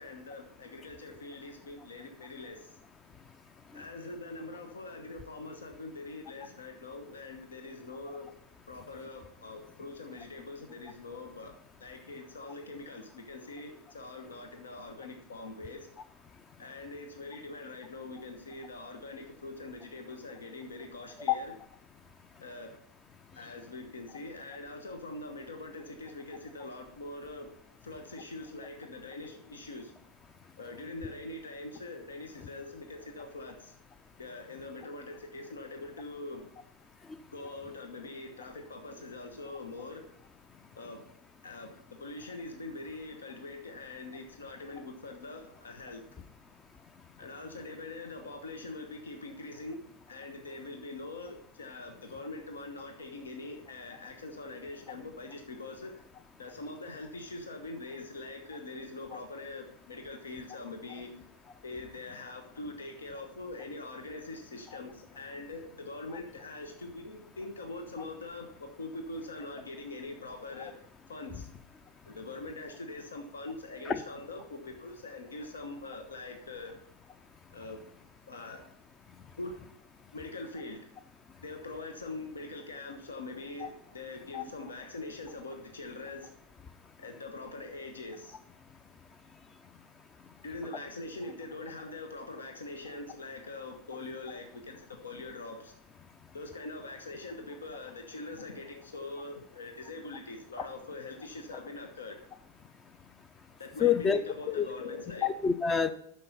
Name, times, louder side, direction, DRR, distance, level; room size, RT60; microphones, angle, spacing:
voice 1, 0.0-2.8 3.7-8.3 8.7-15.9 16.6-21.5 22.4-22.7 23.3-27.5 27.8-29.9 30.6-33.8 34.2-36.5 37.3-40.1 40.7-41.0 41.4-46.0 47.2-49.8 50.1-56.0 56.4-61.1 61.6-71.5 72.1-76.7 77.5-77.8 78.3-78.7 79.4-79.6 80.1-80.9 81.4-86.3 87.0-88.4 90.4-95.7 96.3-102.2 103.6-105.3, left 2 dB, 70° left, 5 dB, 1.1 m, -43 dB
voice 2, 103.8-104.2 104.5-104.7 105.2-105.9, left 7 dB, 20° left, 13 dB, 0.5 m, -26 dB
9.7 x 6.8 x 5.4 m, 0.71 s
figure-of-eight pair, 90°, 0 cm